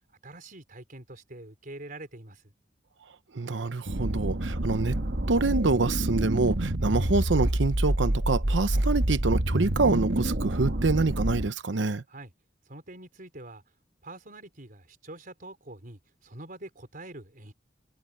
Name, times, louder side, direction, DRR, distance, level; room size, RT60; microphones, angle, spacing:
voice 1, 0.2-2.5 12.1-12.3 12.7-13.6 14.0-17.5, right 2 dB, 50° right, 4.6 m, -45 dB
voice 2, 3.3-5.0 5.3-12.0, right 3 dB, 85° right, 0.8 m, -26 dB
sound 1, 3.9-11.5, right 1 dB, 65° right, 1.6 m, -27 dB
head